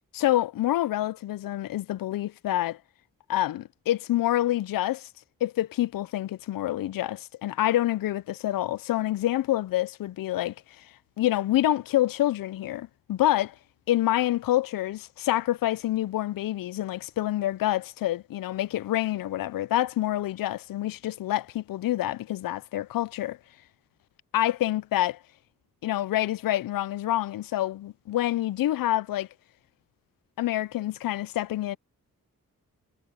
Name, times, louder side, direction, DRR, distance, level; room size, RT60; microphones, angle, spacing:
voice 1, 0.1-2.8 3.3-5.1 5.4-13.5 13.9-23.4 24.3-25.2 25.8-29.3 30.4-31.8, left 14 dB, 75° left, 0.5 m, -27 dB
cardioid pair, 60°, 34 cm